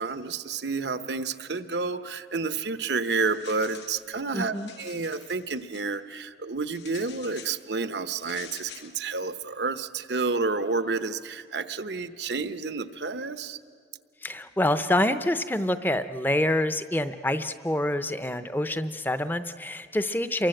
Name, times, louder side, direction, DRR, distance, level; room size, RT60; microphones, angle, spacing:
voice 1, 0.0-13.6, right 4 dB, 75° right, 11 dB, 0.9 m, -30 dB
sound 1, 2.9-4.1 4.4-5.9 6.7-7.6 8.2-8.9, left 8 dB, 85° left, 1.9 m, -47 dB
voice 2, 4.3-4.7 14.2-20.5, left 1 dB, 10° left, 11 dB, 0.7 m, -26 dB
29.0 x 23.5 x 7.8 m, 2.1 s
head